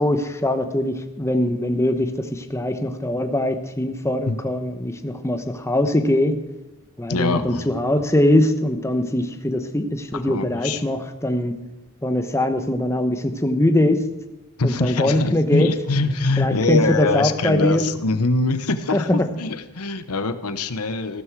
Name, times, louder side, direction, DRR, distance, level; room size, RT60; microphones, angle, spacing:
voice 1, 0.0-6.4 7.0-11.6 12.0-14.1 14.6-15.7 16.4-17.9 18.9-19.3, left 1 dB, 10° left, 7 dB, 0.9 m, -22 dB
voice 2, 7.1-7.7 10.2-10.8 14.6-21.2, left 3 dB, 85° left, 11 dB, 1.0 m, -23 dB
14.5 x 12.5 x 4.7 m, 1.0 s
head